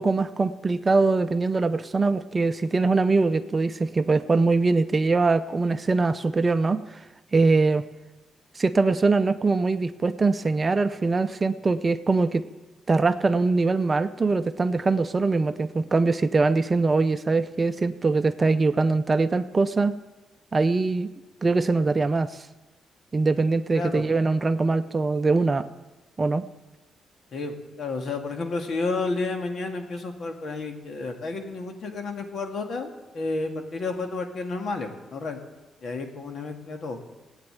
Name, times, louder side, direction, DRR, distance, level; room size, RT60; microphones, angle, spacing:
voice 1, 0.0-6.8 7.3-7.9 8.6-12.4 12.9-19.9 20.5-21.1 21.4-22.4 23.1-25.7 26.2-26.4, right 3 dB, 30° right, 11 dB, 0.6 m, -22 dB
voice 2, 23.7-24.1 27.3-35.4 35.8-37.0, left 3 dB, 60° left, 5 dB, 2.1 m, -31 dB
16.0 x 9.0 x 8.9 m, 1.1 s
cardioid pair, 105°, 0 cm